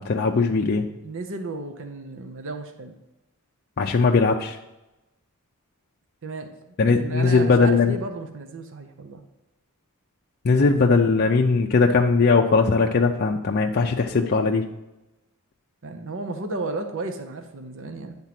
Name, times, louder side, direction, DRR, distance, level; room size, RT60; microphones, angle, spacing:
voice 1, 0.0-0.9 3.8-4.6 6.8-7.9 10.4-14.7, left 4 dB, 45° left, 1 dB, 0.5 m, -19 dB
voice 2, 1.0-2.9 6.2-6.6 7.0-9.2 10.5-10.8 15.8-18.2, right 3 dB, 60° right, 5 dB, 0.7 m, -33 dB
9.3 x 3.7 x 5.8 m, 0.98 s
head